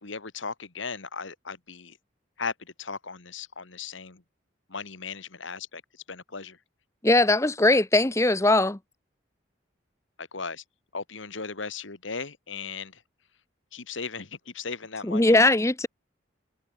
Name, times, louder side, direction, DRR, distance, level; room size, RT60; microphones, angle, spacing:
voice 1, 0.0-2.0 2.4-4.2 4.7-5.8 6.1-6.6 10.2-10.6 10.9-13.0 13.7-15.4, left 5 dB, 75° left, 1.9 m, -37 dB
voice 2, 7.0-8.8 15.0-15.9, left 2 dB, 15° left, 0.8 m, -20 dB
head